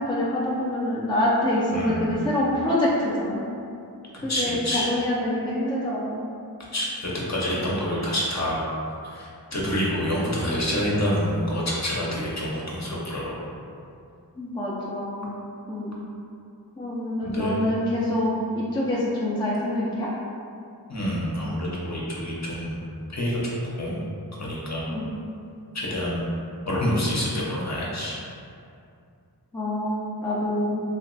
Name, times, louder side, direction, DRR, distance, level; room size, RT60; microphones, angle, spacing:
voice 1, 0.0-3.5 4.2-6.2 14.4-15.3 15.7-16.0 16.8-20.1 24.9-25.1 29.5-30.8, left 1 dB, 10° left, -6 dB, 0.4 m, -26 dB
voice 2, 1.7-2.2 4.1-4.9 6.7-8.7 9.0-13.4 17.2-17.6 20.9-22.8 23.1-23.5 23.8-24.0 24.4-24.9 25.7-26.3 26.7-28.2, equal, 45° left, -5 dB, 0.8 m, -27 dB
2.9 x 2.5 x 2.5 m, 2.5 s
wide cardioid pair, 45°, 40 cm